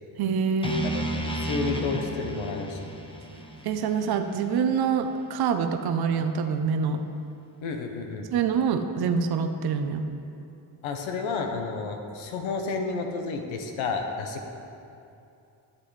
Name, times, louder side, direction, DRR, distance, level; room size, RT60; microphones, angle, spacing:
voice 1, 0.2-0.9 3.6-7.0 8.3-10.0, right 6 dB, 55° right, 6 dB, 0.7 m, -26 dB
sound 1, 0.6-4.8, right 1 dB, 10° left, 0.9 m, -33 dB
voice 2, 1.4-2.8 7.6-8.3 10.8-14.5, left 4 dB, 85° left, 4 dB, 1.0 m, -31 dB
12.5 x 7.6 x 3.2 m, 2.7 s
cardioid pair, 85°, 46 cm